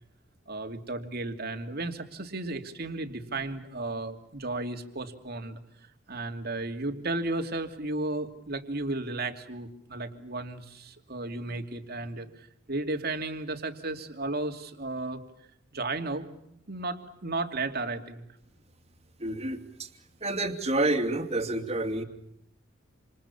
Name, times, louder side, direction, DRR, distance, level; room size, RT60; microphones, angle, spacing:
voice 1, 0.5-5.6 6.1-15.2 15.7-16.3 16.7-18.2, right 2 dB, 50° right, 6 dB, 2.7 m, -34 dB
voice 2, 19.2-19.9 20.2-22.0, right 2 dB, 35° right, 6 dB, 2.8 m, -29 dB
28.0 x 27.5 x 7.2 m, 0.77 s
head